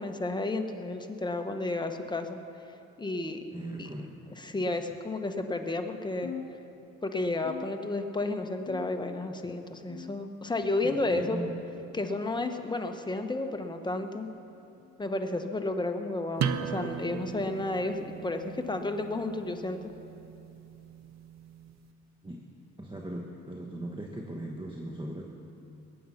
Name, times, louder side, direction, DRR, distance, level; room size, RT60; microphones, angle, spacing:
voice 1, 0.0-2.4 2.7-3.4 3.8-3.9 4.3-6.3 7.0-11.4 11.9-14.3 15.0-19.8, left 2 dB, 15° left, 5 dB, 1.2 m, -32 dB
voice 2, 3.5-4.1 10.8-11.6 22.2-22.4 22.8-25.2, right 1 dB, 15° right, 0 dB, 1.4 m, -38 dB
sound 1, 6.2-7.1 7.4-8.2 8.7-9.3 9.9-10.5 11.1-11.5 12.3-12.6 13.5-13.8 14.8-15.0 16.0-16.2 17.2-17.4 18.4-18.6 19.6-19.7 20.9-21.0, left 7 dB, 50° left, 1.3 m, -46 dB
sound 2, 16.4-21.8, right 7 dB, 60° right, 0.8 m, -37 dB
21.5 x 9.4 x 5.8 m, 2.8 s
cardioid pair, 90°, 30 cm